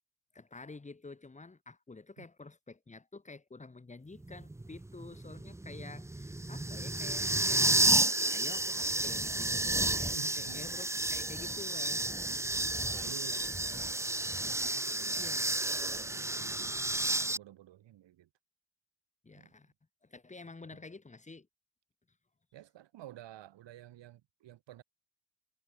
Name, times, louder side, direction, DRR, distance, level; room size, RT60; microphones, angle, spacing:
voice 1, 0.3-12.1 15.2-16.9 19.2-19.7 20.0-21.5, left 3 dB, 15° left, 7.5 m, -50 dB
sound 1, 4.2-17.4, right 2 dB, 5° right, 1.0 m, -31 dB
voice 2, 10.1-10.8 12.2-14.2 14.5-15.4 15.9-18.3 19.4-19.5 20.7-20.8 22.5-24.8, right 13 dB, 65° right, 7.6 m, -52 dB
cardioid pair, 170°, 46 cm